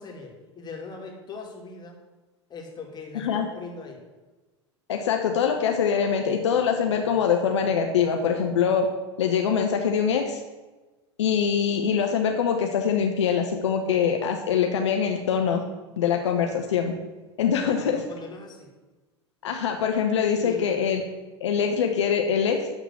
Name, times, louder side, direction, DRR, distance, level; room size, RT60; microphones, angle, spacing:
voice 1, 0.0-2.0 2.5-4.0 17.6-18.7 20.4-20.8 21.6-21.7, left 4 dB, 30° left, 0 dB, 2.4 m, -40 dB
voice 2, 3.1-3.5 4.9-8.9 9.2-10.4 11.2-15.6 16.0-16.9 17.4-18.0 19.4-21.0 21.4-22.7, left 7 dB, 75° left, 3 dB, 0.9 m, -23 dB
11.5 x 3.9 x 7.2 m, 1.2 s
hypercardioid pair, 85°, 15 cm